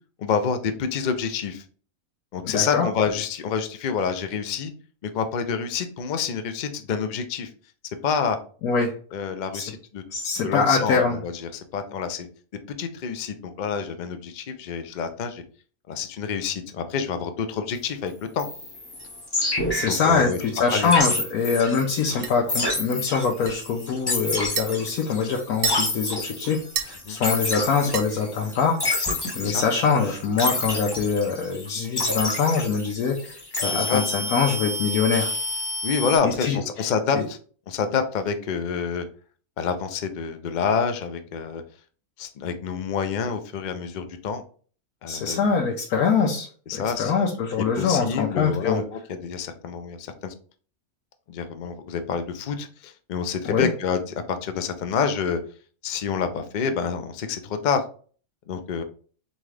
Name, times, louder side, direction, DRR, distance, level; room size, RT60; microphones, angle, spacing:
voice 1, 0.2-1.6 2.3-4.7 5.0-7.5 8.0-8.4 9.1-10.0 10.4-12.3 12.8-15.4 15.9-18.5 19.9-20.4 20.7-20.9 22.2-22.3 27.0-27.2 29.4-29.6 33.7-34.0 35.8-37.4 37.7-39.0 39.6-41.6 42.2-44.4 45.0-45.5 46.7-47.1 47.8-50.3 51.3-55.4 55.8-57.8 58.5-58.8, left 6 dB, 60° left, 8 dB, 0.4 m, -27 dB
voice 2, 2.4-2.9 8.6-8.9 9.5-9.7 10.1-11.2 19.4-29.0 29.3-35.3 36.2-36.9 37.1-37.2 45.1-46.5 46.7-48.8 53.4-53.7, left 5 dB, 80° left, 1 dB, 1.2 m, -24 dB
sound 1, 18.4-36.2, left 2 dB, 20° left, 0.8 m, -29 dB
sound 2, 19.0-28.7, right 8 dB, 55° right, 0.9 m, -38 dB
4.0 x 3.6 x 3.3 m, 0.42 s
omnidirectional pair, 1.5 m